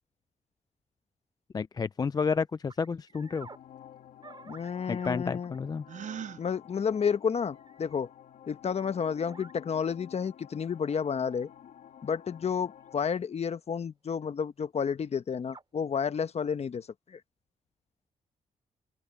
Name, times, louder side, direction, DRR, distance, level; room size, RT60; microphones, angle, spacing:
voice 1, 1.5-3.5 4.9-5.8, left 5 dB, 30° left, 0.3 m, -30 dB
sound 1, 2.0-2.1 2.7-3.6 4.2-5.2 5.5-5.6 7.0-7.2 7.5-8.0 8.8-8.9 9.3-9.6 11.0-11.1 12.6-12.8 13.4-13.5 15.1-15.2 15.5-15.6, right 4 dB, 35° right, 4.3 m, -51 dB
sound 2, 3.1-13.1, left 10 dB, 80° left, 2.9 m, -52 dB
voice 2, 4.5-5.5 6.4-8.1 8.5-11.5 12.0-17.2, left 6 dB, 50° left, 1.1 m, -31 dB
Gasp, 5.9-6.4, right 8 dB, 60° right, 0.6 m, -39 dB
open air
cardioid pair, 80°, 14 cm